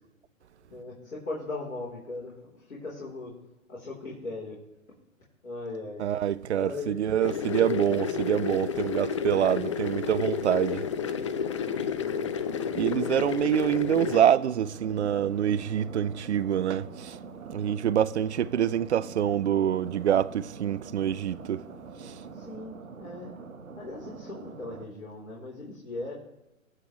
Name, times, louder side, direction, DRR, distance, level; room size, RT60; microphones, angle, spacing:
voice 1, 0.7-3.3 3.7-4.6 5.4-6.1 6.6-7.0 10.8-14.2 22.3-23.3 23.8-26.1, left 2 dB, 70° left, 3.7 m, -40 dB
voice 2, 6.0-10.8 12.7-17.2 17.5-21.6 22.0-22.2, right 10 dB, 55° right, 0.5 m, -26 dB
sound 1, 7.2-14.2, left 7 dB, 25° left, 0.4 m, -31 dB
sound 2, 14.3-24.8, right 5 dB, 75° right, 1.3 m, -44 dB
23.0 x 7.7 x 3.1 m
figure-of-eight pair, 125°, 41 cm